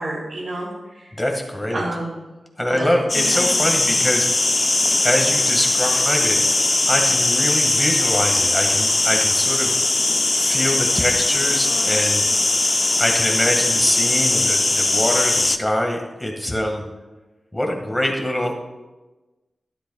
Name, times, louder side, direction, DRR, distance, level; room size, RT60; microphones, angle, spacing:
voice 1, 0.0-1.2 1.7-2.2 2.7-3.7, right 1 dB, 80° right, -9 dB, 3.5 m, -30 dB
voice 2, 1.1-1.8 2.6-4.7 5.0-6.4 6.9-9.8 10.3-12.3 12.9-16.8 17.5-18.5, left 1 dB, 10° left, 2 dB, 1.8 m, -24 dB
sound 1, 3.1-15.6, left 2 dB, 30° left, 0.4 m, -19 dB
13.0 x 11.5 x 2.4 m, 1.1 s
wide cardioid pair, 95°, 0 cm